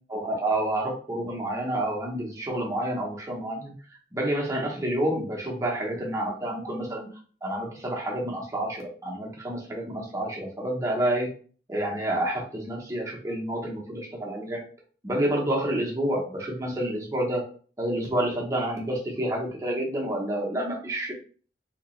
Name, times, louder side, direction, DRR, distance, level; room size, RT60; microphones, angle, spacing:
voice 1, 0.1-3.7 4.1-7.1 7.4-11.3 11.7-14.6 15.0-17.4 17.8-21.1, right 1 dB, 20° right, -2 dB, 1.0 m, -29 dB
3.2 x 2.9 x 3.1 m, 0.41 s
head